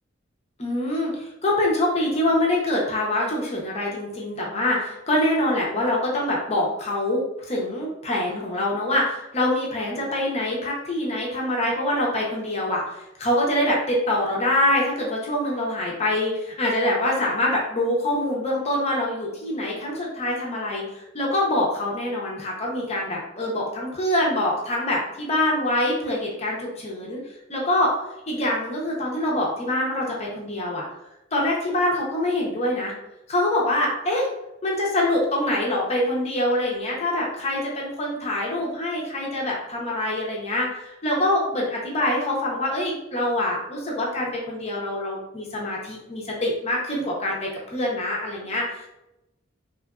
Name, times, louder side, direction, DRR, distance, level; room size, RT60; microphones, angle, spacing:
voice 1, 0.6-20.8 21.1-27.2 27.5-27.9 28.3-30.8 31.3-32.9 33.3-34.3 34.6-48.9, left 1 dB, 35° left, -3 dB, 0.7 m, -25 dB
3.0 x 2.4 x 2.3 m, 0.89 s
head